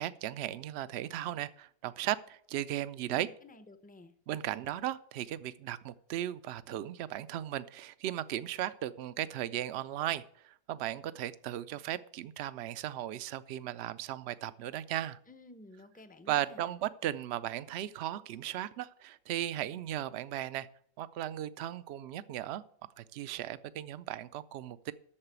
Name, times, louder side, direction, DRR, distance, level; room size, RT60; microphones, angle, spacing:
voice 1, 0.0-3.3 4.3-15.2 16.3-20.7 21.0-22.6 23.0-24.9, right 12 dB, 70° right, 16 dB, 0.6 m, -36 dB
voice 2, 3.1-4.1 15.3-16.8, left 2 dB, 10° left, 10 dB, 0.4 m, -53 dB
8.8 x 6.7 x 8.1 m, 0.65 s
omnidirectional pair, 1.6 m